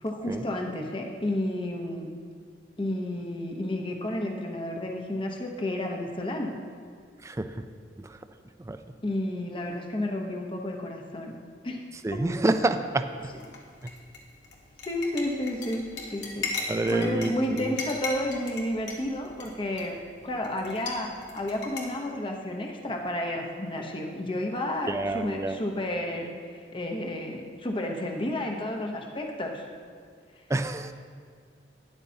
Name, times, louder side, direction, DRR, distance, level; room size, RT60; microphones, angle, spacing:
voice 1, 0.0-2.1 2.8-6.6 9.0-11.4 11.6-11.8 12.1-12.2 14.9-20.0 20.2-29.6, left 1 dB, 30° left, 2 dB, 0.9 m, -31 dB
voice 2, 12.0-13.0 16.7-17.3 17.6-17.7 24.9-25.6 30.5-30.9, right 2 dB, 15° right, 9 dB, 0.4 m, -27 dB
sound 1, 13.2-21.9, left 3 dB, 85° left, 1.7 m, -39 dB
12.5 x 10.5 x 2.8 m, 2.1 s
head